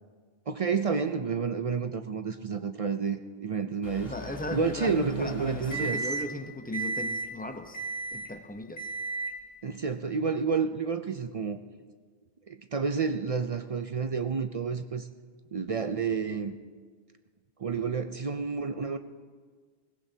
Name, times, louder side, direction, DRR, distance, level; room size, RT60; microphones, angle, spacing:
voice 1, 0.5-4.1 4.5-6.0 9.6-11.6 12.5-15.1 15.5-16.5 17.6-19.0, right 5 dB, 50° right, 8 dB, 0.4 m, -30 dB
Microwave oven, 3.8-6.4 6.7-7.3 7.7-8.3 8.8-9.4, right 3 dB, 60° left, 1.9 m, -35 dB
voice 2, 4.0-7.8 8.1-8.9, left 1 dB, 10° left, 6 dB, 0.6 m, -37 dB
21.0 x 16.5 x 2.8 m, 1.5 s
omnidirectional pair, 1.2 m